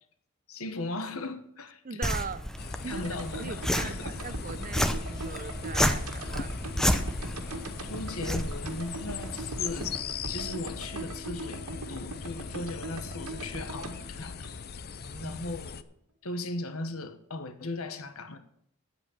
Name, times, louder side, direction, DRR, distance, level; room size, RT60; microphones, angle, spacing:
voice 1, 0.5-2.0 2.9-4.1 7.8-9.9 10.3-14.5 15.2-15.8 16.2-18.4, left 2 dB, 75° left, 1.3 m, -37 dB
voice 2, 1.8-2.5 2.8-3.1 3.4-6.6 15.0-15.4, right 5 dB, 40° right, 0.6 m, -40 dB
sound 1, 2.0-10.0, equal, ahead, 0.6 m, -32 dB
sound 2, 2.6-15.8, left 6 dB, 45° left, 0.6 m, -40 dB
sound 3, 2.9-15.1 15.3-15.4, right 2 dB, 85° right, 1.8 m, -40 dB
9.5 x 8.0 x 8.7 m
head